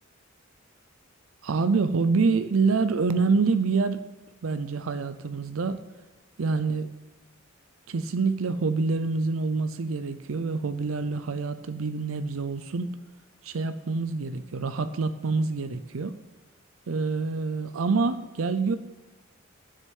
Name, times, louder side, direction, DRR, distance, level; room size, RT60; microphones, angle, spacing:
voice 1, 1.4-4.0 4.4-5.8 6.4-6.9 7.9-12.9 13.4-16.1 16.9-18.8, right 4 dB, 90° right, 11 dB, 0.5 m, -26 dB
7.6 x 6.6 x 7.3 m, 1.2 s
head